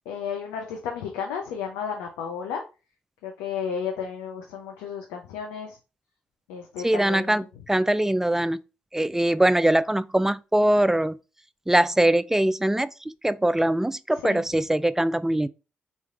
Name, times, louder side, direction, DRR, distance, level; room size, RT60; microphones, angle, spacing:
voice 1, 0.1-2.6 3.2-5.8 6.5-7.5 14.2-14.4, left 7 dB, 80° left, 0.5 m, -33 dB
voice 2, 6.8-8.6 8.9-11.1 11.7-12.9 13.2-15.5, right 1 dB, 10° right, 0.3 m, -22 dB
4.0 x 3.2 x 2.4 m
hypercardioid pair, 40°, 4 cm